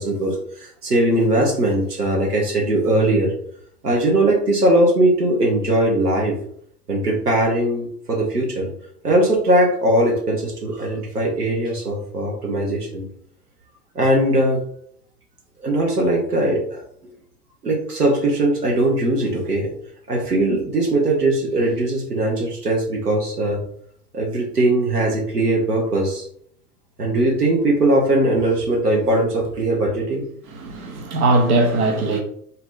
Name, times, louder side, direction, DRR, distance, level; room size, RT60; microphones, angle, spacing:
voice 1, 0.0-3.3 3.8-6.3 6.9-8.7 9.0-13.1 13.9-14.6 15.6-16.8 17.6-19.7 20.1-23.6 24.1-26.2 27.0-30.3, right 1 dB, 90° right, 1.1 m, -20 dB
voice 2, 30.5-32.2, right 2 dB, 70° right, 1.1 m, -19 dB
4.1 x 2.7 x 3.7 m
figure-of-eight pair, 75°, 45 cm